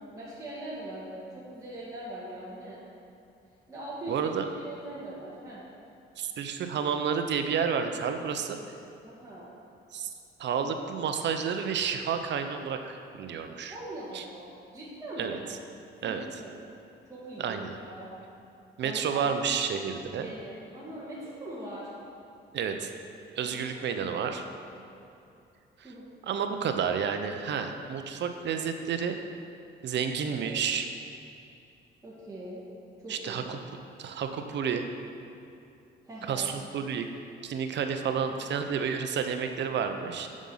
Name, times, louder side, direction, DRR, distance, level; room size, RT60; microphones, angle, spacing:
voice 1, 0.1-2.9 3.7-5.6 9.0-9.5 13.7-15.4 16.0-16.5 17.1-18.1 18.8-19.2 20.0-21.9 23.4-24.9 25.8-26.1 30.1-30.5 32.0-32.6 33.0-33.5 36.0-36.5, right 1 dB, 15° right, -9 dB, 2.0 m, -42 dB
voice 2, 4.1-4.5 6.2-8.6 9.9-10.1 10.4-13.8 14.1-14.2 15.2-15.4 16.0-16.3 17.4-17.8 18.8-20.3 22.5-22.9 23.4-24.5 26.3-29.2 29.8-30.9 33.1-33.6 34.0-34.9 36.3-37.1 37.4-40.3, right 7 dB, 65° right, 7 dB, 0.7 m, -30 dB
7.4 x 6.4 x 5.6 m, 2.6 s
cardioid pair, 90°, 20 cm